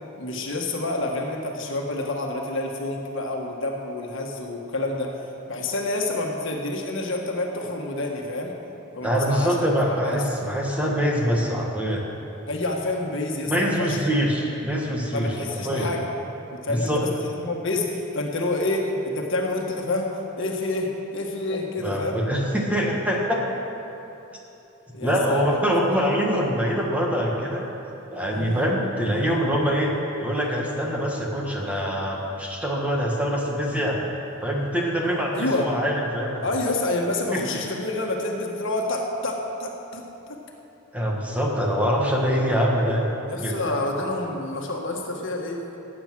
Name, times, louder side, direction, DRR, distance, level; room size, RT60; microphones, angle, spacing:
voice 1, 0.2-5.2 5.5-8.6 8.9-9.7 10.0-10.2 12.5-14.0 15.1-16.1 16.5-22.3 24.9-25.8 28.3-28.6 35.3-35.8 36.4-40.4 43.3-45.6, left 2 dB, 60° left, 0 dB, 1.6 m, -28 dB
voice 2, 9.0-12.1 13.4-15.9 16.7-17.0 21.5-23.4 25.0-27.7 28.1-29.9 30.2-34.0 34.4-36.6 37.3-37.4 40.9-43.8, equal, 5° right, -2 dB, 1.5 m, -24 dB
16.5 x 9.1 x 6.2 m, 3.0 s
head